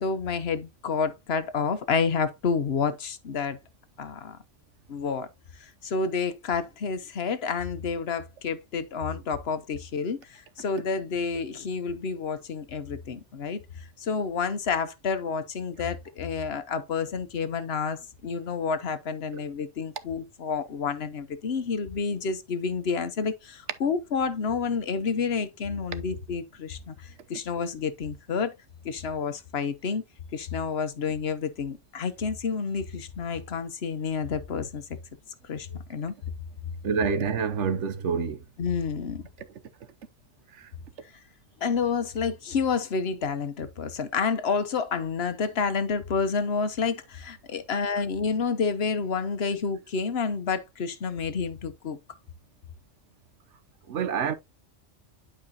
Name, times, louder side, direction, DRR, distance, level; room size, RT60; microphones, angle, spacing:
voice 1, 0.0-3.6 4.0-4.4 4.9-5.3 5.6-13.6 14.0-28.5 28.8-30.0 30.3-34.8 35.5-36.1 38.6-39.3 41.6-52.0, left 5 dB, 55° left, 1.1 m, -29 dB
voice 2, 36.8-38.4 40.5-40.7 53.9-54.3, right 6 dB, 70° right, 1.2 m, -27 dB
11.0 x 4.9 x 2.9 m
omnidirectional pair, 1.3 m